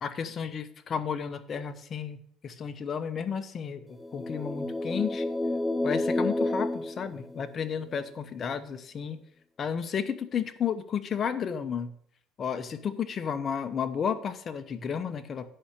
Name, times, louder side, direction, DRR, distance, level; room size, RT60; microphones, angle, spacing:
voice 1, 0.0-5.3 5.8-9.2 9.6-11.9 12.4-15.5, left 7 dB, 35° left, 10 dB, 0.9 m, -32 dB
sound 1, 4.0-7.9, left 2 dB, 10° left, 0.4 m, -30 dB
9.0 x 5.6 x 6.6 m, 0.64 s
cardioid pair, 130°, 0 cm